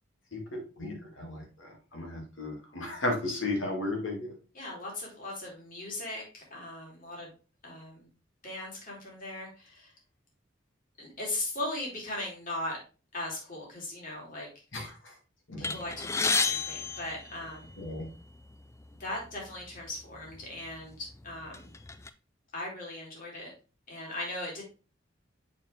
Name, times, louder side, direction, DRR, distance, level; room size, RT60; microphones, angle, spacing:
voice 1, 0.3-4.3 14.7-15.1 15.5-15.8 17.8-18.1, left 2 dB, 80° left, 1 dB, 2.1 m, -35 dB
voice 2, 4.5-7.3 7.6-8.1 8.4-9.9 11.0-12.8 13.1-14.5 15.6-17.7 19.0-21.8 22.5-23.5 23.9-24.6, left 1 dB, 45° left, -2 dB, 2.8 m, -38 dB
sound 1, 15.6-18.0 18.8-18.9 19.3-19.4 20.3-20.4 20.9-22.1, left 4 dB, 15° left, 0.3 m, -31 dB
7.0 x 4.7 x 3.3 m, 0.34 s
head